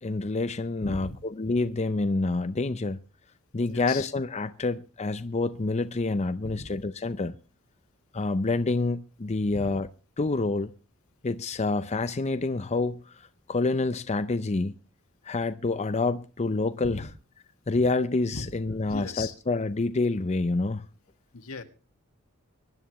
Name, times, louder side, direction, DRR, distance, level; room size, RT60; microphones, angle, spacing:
voice 1, 0.0-3.0 3.5-7.3 8.1-9.9 10.2-10.7 11.2-14.7 15.2-17.1 17.7-20.8, left 3 dB, 30° left, 0.6 m, -27 dB
voice 2, 0.8-1.2 3.7-4.1 6.4-6.7 9.5-9.8 16.8-17.1 18.3-18.5 18.9-19.3 21.3-21.6, left 3 dB, 80° left, 1.8 m, -37 dB
24.0 x 11.0 x 3.1 m
head